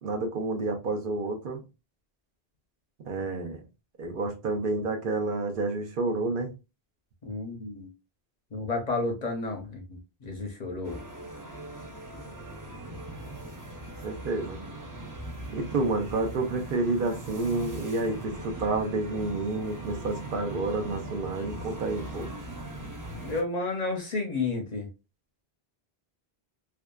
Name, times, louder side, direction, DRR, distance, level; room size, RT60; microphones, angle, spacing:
voice 1, 0.0-1.6 3.1-3.6 4.0-6.5 14.0-14.6 15.5-22.3, right 3 dB, 60° right, 0.8 m, -29 dB
voice 2, 7.2-7.9 8.5-11.0 23.2-24.9, left 3 dB, 50° left, 0.6 m, -31 dB
sound 1, 10.8-23.4, right 1 dB, 30° right, 0.4 m, -40 dB
2.7 x 2.3 x 2.2 m
omnidirectional pair, 1.0 m